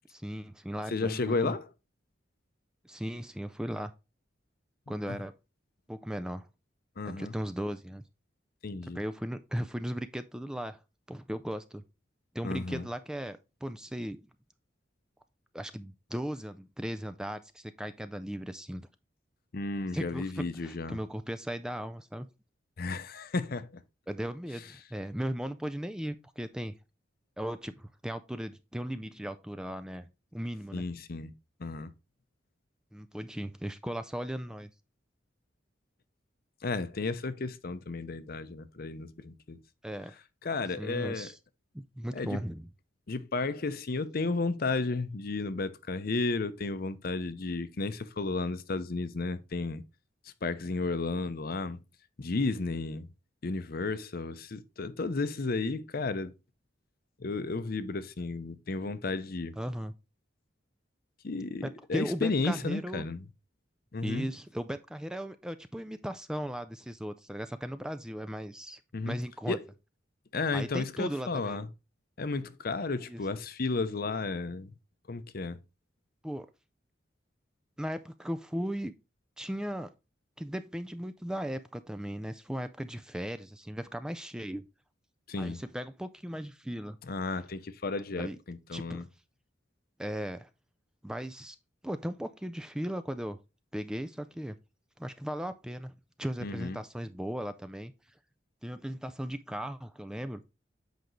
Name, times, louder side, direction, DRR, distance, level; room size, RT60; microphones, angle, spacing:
voice 1, 0.1-1.6 2.8-3.9 4.9-5.3 5.9-6.5 7.1-8.0 8.9-10.8 11.1-11.8 12.3-14.2 15.5-18.9 19.9-22.3 24.1-26.7 27.4-30.8 32.9-34.7 39.8-40.2 40.8-41.4 41.7-42.7 59.6-59.9 61.6-63.1 64.0-68.8 69.1-69.6 70.5-71.6 73.1-73.2 76.2-76.5 77.8-78.9 79.4-79.9 80.4-84.7 85.4-87.0 88.2-88.4 88.7-89.0 90.0-90.5 91.0-91.6 91.8-93.4 93.7-94.6 95.0-95.9 96.2-97.9 98.6-100.4, equal, 5° right, 0.3 m, -37 dB
voice 2, 0.9-1.7 5.1-5.2 7.0-7.3 8.6-9.0 12.4-12.9 19.5-21.0 22.8-23.8 30.7-31.3 31.6-31.9 36.6-39.6 40.4-41.3 42.1-42.4 43.1-49.8 50.2-51.8 52.2-53.1 53.4-56.3 57.2-59.5 61.2-63.3 63.9-64.3 68.9-69.2 69.5-69.6 70.3-71.7 72.2-74.7 75.1-75.6 85.3-85.6 87.0-89.1 96.4-96.8, left 3 dB, 50° left, 0.6 m, -33 dB
8.0 x 5.1 x 3.1 m
head